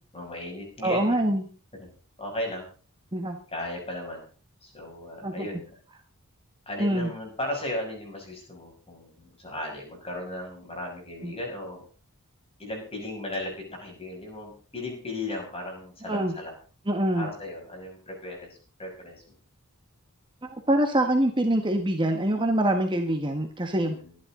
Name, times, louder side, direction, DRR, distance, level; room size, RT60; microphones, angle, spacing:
voice 1, 0.1-1.1 2.2-2.7 3.5-4.2 4.6-5.7 6.7-11.8 12.6-16.5 17.1-18.5 18.8-19.2 23.8-24.2, left 1 dB, 25° left, 1 dB, 6.7 m, -36 dB
voice 2, 0.8-1.4 3.1-3.4 5.2-5.5 6.8-7.1 11.2-11.3 16.0-16.3 16.9-17.3 20.7-24.0, right 1 dB, 20° right, 4 dB, 1.5 m, -24 dB
23.0 x 11.5 x 3.9 m, 0.38 s
head